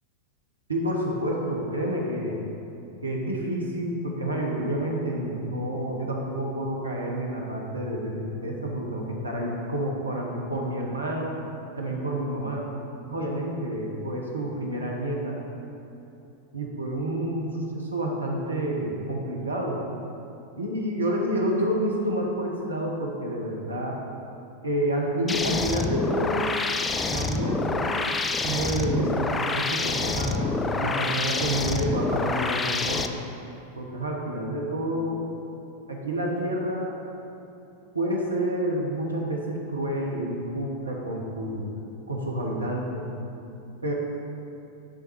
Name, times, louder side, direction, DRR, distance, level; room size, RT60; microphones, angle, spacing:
voice 1, 0.7-2.4 3.0-11.4 11.8-12.7 13.0-15.4 16.5-19.8 20.6-24.0 24.6-26.4 27.1-28.0 28.4-33.0 33.7-35.2 35.9-37.0 37.9-41.7 42.1-43.1 43.8-43.9, right 1 dB, 80° right, -1 dB, 1.1 m, -29 dB
sound 1, 25.3-33.1, left 3 dB, 15° left, 0.4 m, -27 dB
10.0 x 3.9 x 4.6 m, 2.9 s
figure-of-eight pair, 90°, 0 cm